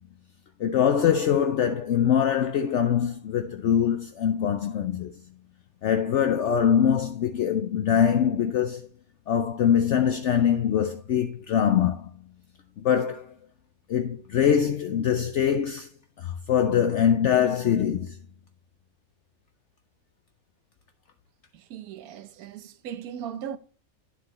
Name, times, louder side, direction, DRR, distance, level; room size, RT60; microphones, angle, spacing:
voice 1, 0.6-5.1 5.8-8.9 9.3-12.1 12.8-13.3 13.9-15.9 16.2-18.2, left 8 dB, 65° left, 0.8 m, -23 dB
voice 2, 21.5-23.6, right 9 dB, 85° right, 1.2 m, -38 dB
9.4 x 7.1 x 2.9 m
omnidirectional pair, 1.5 m